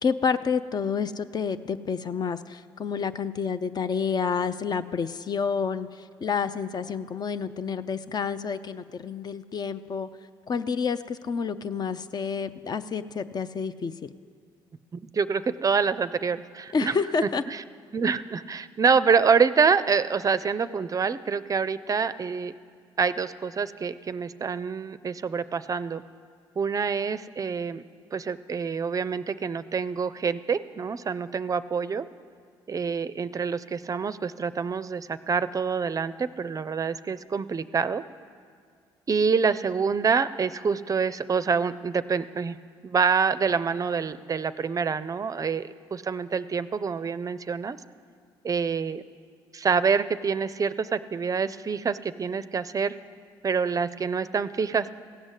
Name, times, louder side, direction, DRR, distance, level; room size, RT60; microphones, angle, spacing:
voice 1, 0.0-10.1 10.5-14.1 16.7-17.4, left 6 dB, 40° left, 12 dB, 0.5 m, -29 dB
voice 2, 14.9-16.9 17.5-17.6 17.9-22.5 23.0-26.0 26.6-27.8 28.1-32.1 32.7-38.0 39.1-42.6 42.8-47.8 48.4-49.0 49.5-53.0 53.4-54.9, right 5 dB, 35° right, 14 dB, 0.4 m, -26 dB
16.0 x 6.3 x 8.1 m, 2.1 s
supercardioid pair, 60°, 10 cm